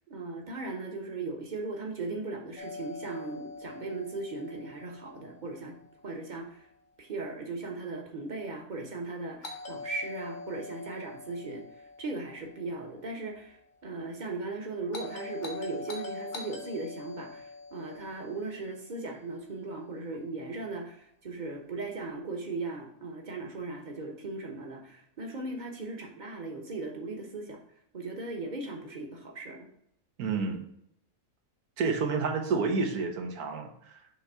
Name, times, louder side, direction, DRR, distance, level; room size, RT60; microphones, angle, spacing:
voice 1, 0.1-5.7 6.0-6.6 7.0-11.6 12.0-13.6 13.8-27.6 27.9-29.7, right 3 dB, 35° right, 2 dB, 1.0 m, -38 dB
Doorbell, 2.6-6.6 9.4-13.6 14.9-19.3, left 3 dB, 40° left, 0.8 m, -44 dB
voice 2, 30.2-30.6 31.8-33.7, right 4 dB, 80° right, 4 dB, 1.4 m, -29 dB
6.1 x 3.4 x 5.5 m, 0.73 s
omnidirectional pair, 1.6 m